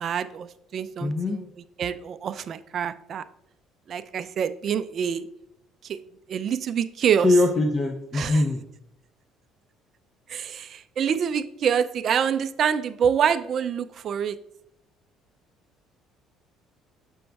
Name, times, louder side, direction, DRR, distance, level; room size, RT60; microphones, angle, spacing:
voice 1, 0.0-1.5 1.8-3.2 3.9-5.3 5.8-6.0 6.3-7.3 8.1-8.4 10.3-14.4, right 8 dB, 55° right, 12 dB, 0.3 m, -26 dB
voice 2, 1.0-1.4 7.2-8.6, left 2 dB, 35° left, 4 dB, 0.6 m, -22 dB
6.8 x 6.2 x 2.3 m, 0.81 s
supercardioid pair, 85°, 0 cm